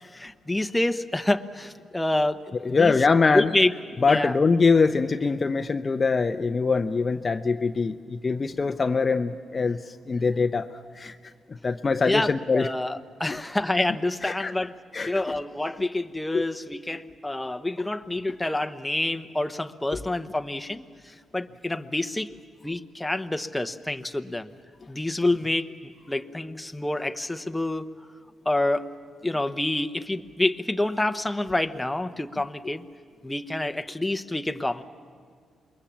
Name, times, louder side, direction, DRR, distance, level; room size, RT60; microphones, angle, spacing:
voice 1, 0.1-3.0 3.3-3.7 4.1-4.3 12.0-14.7 15.1-22.3 22.6-24.5 24.9-25.7 26.1-27.9 28.4-28.9 29.2-32.8 33.2-34.8, left 2 dB, 10° left, 8 dB, 0.9 m, -27 dB
voice 2, 2.6-3.5 4.0-10.7 11.0-11.1 11.6-12.7 13.2-13.4 14.2-14.5 14.9-15.4 16.3-16.4 17.8-17.9, left 4 dB, 35° left, 8 dB, 0.7 m, -23 dB
27.5 x 22.0 x 7.4 m, 2.1 s
cardioid pair, 85°, 0 cm